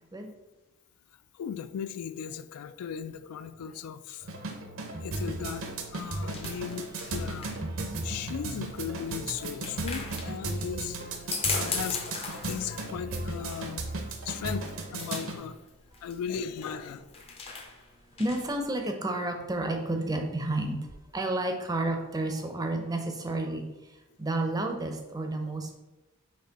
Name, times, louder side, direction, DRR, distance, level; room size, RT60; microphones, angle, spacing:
voice 1, 1.3-4.5 5.0-5.7 5.9-7.6 7.8-15.6 16.0-17.4, left 8 dB, 75° left, 13 dB, 0.3 m, -37 dB
sound 1, 4.2-15.4, right 2 dB, 65° right, 0.7 m, -36 dB
sound 2, 5.8-18.6, left 4 dB, 25° left, 0.5 m, -39 dB
voice 2, 18.2-20.8 21.1-23.6 24.2-25.8, right 2 dB, 15° right, 4 dB, 0.5 m, -30 dB
4.4 x 3.1 x 4.0 m, 1.1 s
head